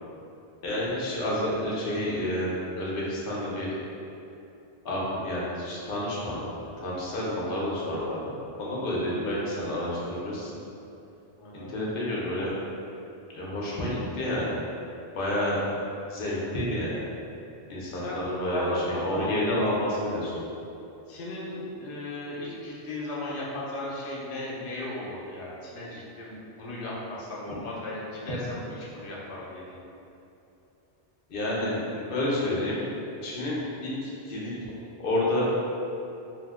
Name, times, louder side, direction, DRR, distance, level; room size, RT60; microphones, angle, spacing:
voice 1, 0.6-3.7 4.8-6.4 6.8-10.5 11.5-12.5 13.3-14.6 15.1-15.6 16.1-17.0 17.7-20.4 31.3-32.8 33.2-34.5 35.0-35.6, left 1 dB, 60° left, -6 dB, 0.8 m, -29 dB
voice 2, 11.3-11.7 17.9-19.4 21.1-29.8, left 1 dB, 85° left, -5 dB, 0.9 m, -36 dB
2.7 x 2.1 x 3.5 m, 2.8 s
omnidirectional pair, 1.1 m